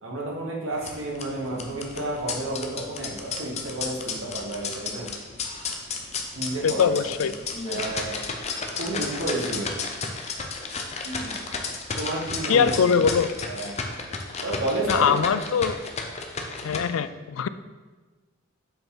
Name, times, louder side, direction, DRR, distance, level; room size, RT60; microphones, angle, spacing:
voice 1, 0.0-5.1 5.6-5.7 6.3-7.3 7.6-8.2 8.8-9.7 10.6-10.7 11.0-11.4 11.9-12.9 13.4-13.8 14.4-15.2, right 1 dB, 80° right, -2 dB, 1.6 m, -31 dB
sound 1, 0.7-16.8, left 4 dB, 30° left, 0.6 m, -33 dB
voice 2, 6.6-7.3 12.5-13.3 14.9-15.8 16.6-17.5, left 6 dB, 80° left, 13 dB, 0.4 m, -22 dB
7.5 x 5.1 x 3.9 m, 1.3 s
head